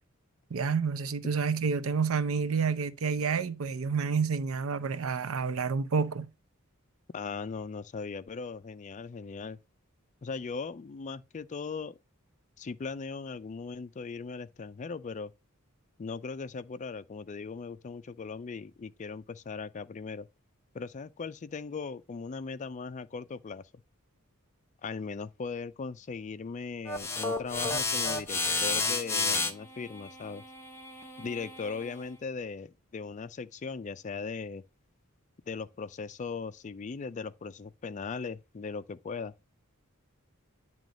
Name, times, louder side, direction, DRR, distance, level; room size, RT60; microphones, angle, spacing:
voice 1, 0.5-6.3, right 5 dB, 75° right, 0.6 m, -29 dB
voice 2, 7.1-9.6 10.2-12.0 12.6-15.3 16.0-20.3 20.7-23.7 24.8-30.4 31.2-34.6 35.5-39.3, left 4 dB, 35° left, 0.4 m, -38 dB
sound 1, 26.9-32.0, left 3 dB, 10° left, 0.9 m, -32 dB
9.2 x 3.1 x 4.9 m
head